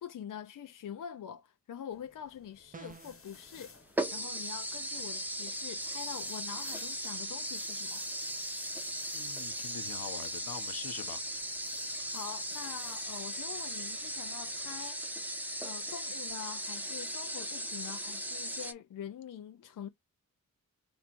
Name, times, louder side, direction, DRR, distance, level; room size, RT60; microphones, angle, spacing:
voice 1, 0.0-3.8 4.1-8.0 11.8-15.0 15.6-19.9, left 9 dB, 60° left, 0.5 m, -45 dB
sound 1, 1.9-14.9, left 4 dB, 35° left, 1.2 m, -57 dB
sound 2, 2.7-3.3, right 4 dB, 25° right, 0.5 m, -48 dB
sound 3, 3.3-3.4 4.0-18.7, right 1 dB, 5° right, 0.9 m, -37 dB
voice 2, 9.1-11.2, left 8 dB, 80° left, 1.0 m, -44 dB
4.5 x 3.2 x 2.5 m
cardioid pair, 50°, 35 cm